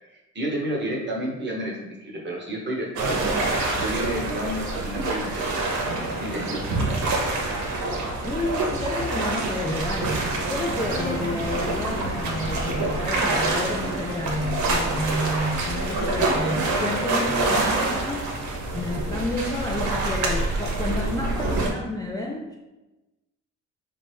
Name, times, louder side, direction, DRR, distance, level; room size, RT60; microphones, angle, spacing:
voice 1, 0.1-3.3 3.8-5.5 6.2-6.9 16.3-16.6, right 1 dB, 35° right, -3 dB, 1.1 m, -30 dB
sound 1, 3.0-21.7, right 2 dB, 70° right, 0.8 m, -26 dB
voice 2, 8.2-18.3 18.7-22.6, left 1 dB, 15° left, -1 dB, 0.3 m, -30 dB
Bowed string instrument, 10.8-16.8, left 1 dB, 90° left, 1.1 m, -39 dB
3.9 x 2.2 x 3.4 m, 1.1 s
cardioid pair, 90°, 30 cm